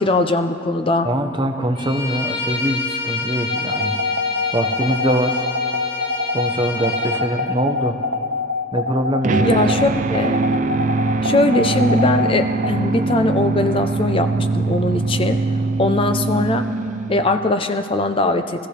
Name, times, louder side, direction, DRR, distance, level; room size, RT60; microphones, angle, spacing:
voice 1, 0.0-1.1 9.4-10.4 11.2-15.4 15.8-16.7 17.1-18.7, left 2 dB, 30° left, 8 dB, 0.6 m, -20 dB
voice 2, 1.0-4.0 4.5-5.4 6.3-8.0 8.7-9.6, right 1 dB, 25° right, 5 dB, 0.9 m, -23 dB
Bowed string instrument, 1.8-7.3, left 3 dB, 55° left, 1.9 m, -27 dB
sound 1, 3.5-12.7, left 3 dB, 65° right, 0.7 m, -24 dB
sound 2, 9.2-17.5, right 3 dB, 40° right, 0.4 m, -22 dB
23.0 x 15.0 x 3.3 m, 2.5 s
head